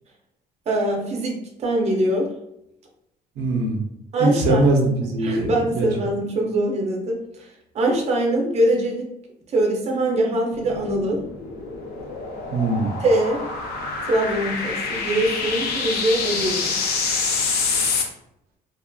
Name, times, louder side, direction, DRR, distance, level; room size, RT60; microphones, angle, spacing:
voice 1, 0.7-2.3 4.1-4.6 5.2-7.5 7.7-9.1 9.5-11.2 13.0-13.4 14.1-16.8, right 1 dB, 40° right, 0 dB, 0.6 m, -23 dB
voice 2, 3.4-3.8 4.2-5.9 12.5-13.0, right 2 dB, 80° right, 0 dB, 0.7 m, -21 dB
sound 1, 10.5-18.0, left 4 dB, 70° left, 0.5 m, -27 dB
2.6 x 2.4 x 2.2 m, 0.82 s
cardioid pair, 110°, 17 cm